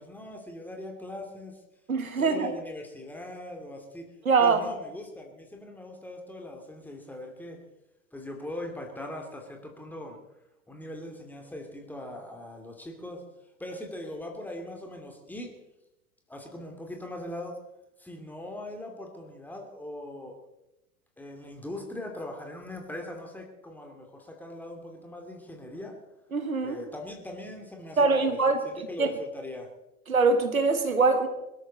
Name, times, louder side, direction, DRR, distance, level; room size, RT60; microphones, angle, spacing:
voice 1, 0.0-1.6 2.1-4.1 4.4-7.6 8.1-10.2 10.7-13.2 13.6-15.5 16.3-17.6 18.0-20.4 21.2-25.9 26.6-29.7, left 1 dB, 5° left, 2 dB, 2.7 m, -40 dB
voice 2, 1.9-2.5 4.2-4.6 26.3-26.8 28.0-29.1 30.1-31.3, right 4 dB, 80° right, 9 dB, 1.7 m, -23 dB
22.0 x 13.0 x 4.1 m, 0.94 s
figure-of-eight pair, 85°, 42 cm